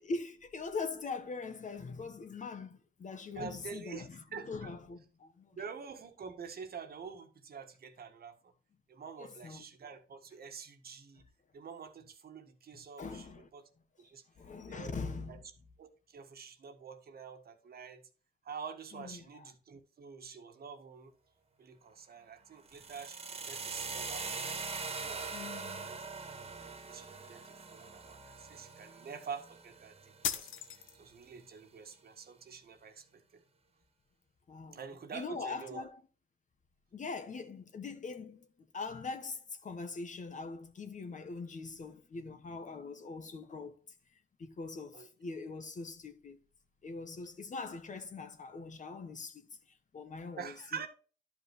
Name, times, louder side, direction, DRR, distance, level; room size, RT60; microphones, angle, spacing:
voice 1, 0.0-5.6 9.2-9.6 12.7-13.5 14.4-15.4 18.9-19.5 25.3-26.0 34.5-34.8 35.1-36.0 36.9-38.5 38.7-43.8 44.4-46.4 46.8-50.8, left 4 dB, 40° left, 1.2 m, -42 dB
voice 2, 3.4-4.7 5.5-8.5 8.9-11.2 11.5-13.3 13.5-13.6 14.0-14.2 14.7-14.9 15.3-15.4 15.8-18.0 18.4-21.1 21.6-26.0 26.3-26.4 26.9-30.5 31.0-33.4 34.7-35.9 44.9-45.1 50.4-50.9, right 6 dB, 50° right, 1.6 m, -47 dB
sound 1, 22.7-30.7, right 4 dB, 30° right, 1.2 m, -42 dB
sound 2, 30.2-31.3, left 9 dB, 80° left, 1.1 m, -37 dB
11.5 x 5.4 x 3.2 m
cardioid pair, 90°, 20 cm